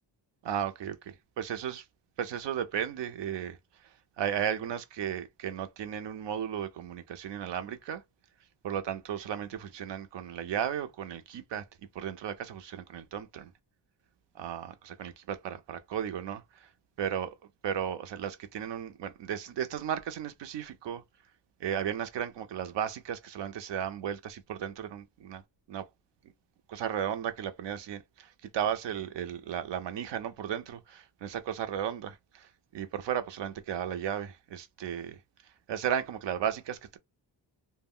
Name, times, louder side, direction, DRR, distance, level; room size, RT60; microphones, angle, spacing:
voice 1, 0.4-1.9 2.2-8.0 8.6-11.6 11.9-13.5 14.3-16.7 17.0-17.3 17.6-21.0 21.6-25.4 25.7-25.9 26.7-37.0, right 9 dB, 70° right, 0.6 m, -35 dB
2.1 x 2.1 x 3.5 m
cardioid pair, 95°, 44 cm